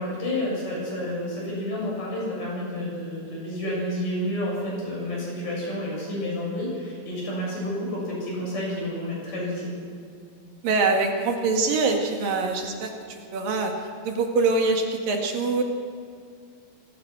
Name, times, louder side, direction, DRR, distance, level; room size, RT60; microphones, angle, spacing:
voice 1, 0.0-9.8, left 1 dB, 65° left, -4 dB, 9.5 m, -30 dB
voice 2, 10.6-13.7 14.0-15.6, right 3 dB, 75° right, 3 dB, 3.9 m, -24 dB
26.5 x 18.0 x 6.3 m, 2.2 s
omnidirectional pair, 4.0 m